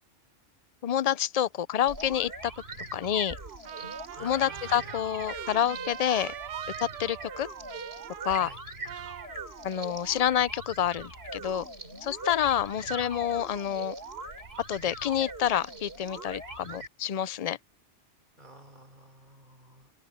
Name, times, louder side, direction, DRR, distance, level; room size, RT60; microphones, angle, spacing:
voice 1, 0.8-2.5 2.9-3.4 4.2-6.3 6.8-7.5 8.2-8.5 9.6-11.7 12.0-13.9 14.7-17.6, left 10 dB, 55° left, 0.4 m, -28 dB
sound 1, 1.9-16.9, right 2 dB, 55° right, 4.2 m, -42 dB
Trumpet, 3.6-8.6 8.8-9.9, right 11 dB, 80° right, 1.0 m, -42 dB
voice 2, 4.2-5.0 8.4-8.6 18.4-19.9, right 1 dB, 40° right, 6.0 m, -49 dB
omnidirectional pair, 1.3 m